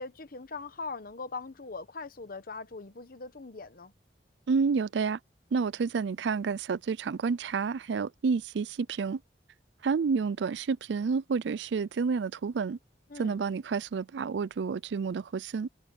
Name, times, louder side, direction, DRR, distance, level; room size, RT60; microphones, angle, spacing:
voice 1, 0.0-3.9 13.1-13.4, left 4 dB, 55° left, 1.1 m, -41 dB
voice 2, 4.5-5.2 5.5-9.2 9.8-12.8 13.2-15.7, right 5 dB, 75° right, 0.4 m, -29 dB
head